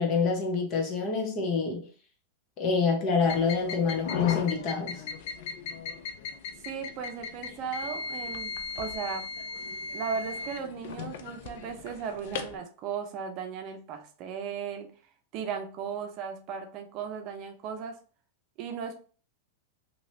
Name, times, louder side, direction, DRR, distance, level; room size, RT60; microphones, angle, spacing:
voice 1, 0.0-1.9 2.6-5.0, left 5 dB, 40° left, 1.1 m, -27 dB
sound 1, 3.2-12.6, left 6 dB, 60° left, 0.4 m, -36 dB
voice 2, 6.6-9.3 9.9-14.9 15.3-18.0 18.6-19.0, right 6 dB, 45° right, 0.6 m, -36 dB
3.0 x 2.9 x 2.6 m
hypercardioid pair, 105°, 0 cm